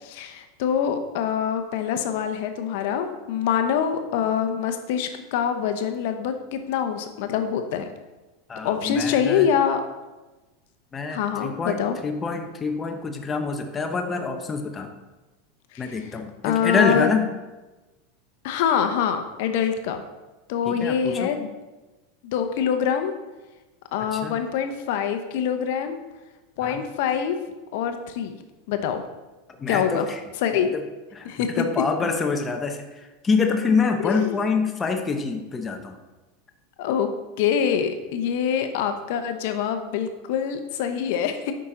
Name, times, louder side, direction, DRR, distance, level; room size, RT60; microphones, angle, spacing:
voice 1, 0.0-7.9 8.6-9.8 11.1-12.0 15.7-16.0 16.4-17.1 18.4-20.0 20.5-21.5 22.2-23.1 23.9-26.0 26.6-27.4 27.7-28.4 28.7-29.0 29.7-30.1 30.4-30.7 31.3-31.5 34.0-34.4 36.8-37.1 37.4-41.5, left 8 dB, 65° left, 8 dB, 0.8 m, -25 dB
voice 2, 8.5-9.5 10.9-14.9 15.8-17.3 20.6-21.3 24.1-24.4 26.6-26.8 29.6-30.2 30.5-30.8 31.1-31.3 31.5-36.0, left 4 dB, 20° left, 5 dB, 0.8 m, -26 dB
8.7 x 5.8 x 3.8 m, 1.1 s
supercardioid pair, 135°, 0 cm